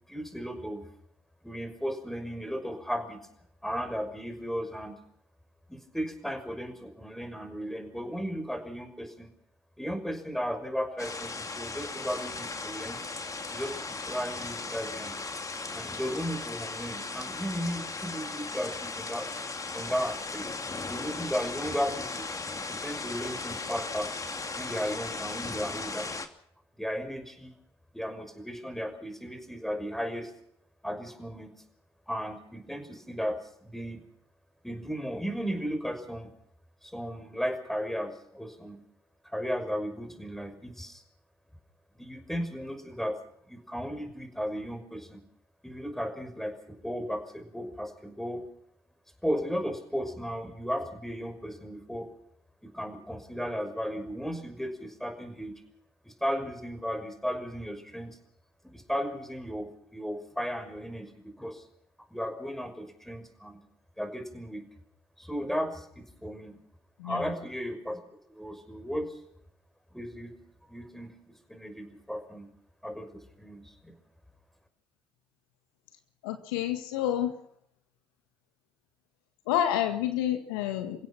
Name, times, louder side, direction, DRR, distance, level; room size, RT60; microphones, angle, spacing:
voice 1, 0.1-0.8 1.4-3.2 3.6-5.0 5.7-9.3 9.8-13.0 13.5-15.1 15.7-19.3 19.7-20.6 20.9-22.3 22.7-24.1 24.6-26.1 26.8-27.5 27.9-30.3 30.8-31.5 32.1-34.0 34.6-36.3 36.8-38.8 39.2-41.0 41.9-43.2 43.5-45.2 45.6-48.4 49.2-52.1 52.6-55.5 56.0-58.2 58.7-61.6 62.1-63.6 64.0-64.6 65.2-66.5 67.0-68.0 68.3-69.2 69.9-70.3 70.7-72.5 72.8-73.9, equal, ahead, 6 dB, 6.0 m, -35 dB
sound 1, 11.0-26.3, left 3 dB, 30° left, 2.7 m, -37 dB
voice 2, 67.0-67.3 76.2-77.3 79.5-81.1, left 11 dB, 75° left, 7 dB, 1.7 m, -29 dB
29.5 x 16.5 x 6.1 m, 0.71 s
hypercardioid pair, 50°, 12 cm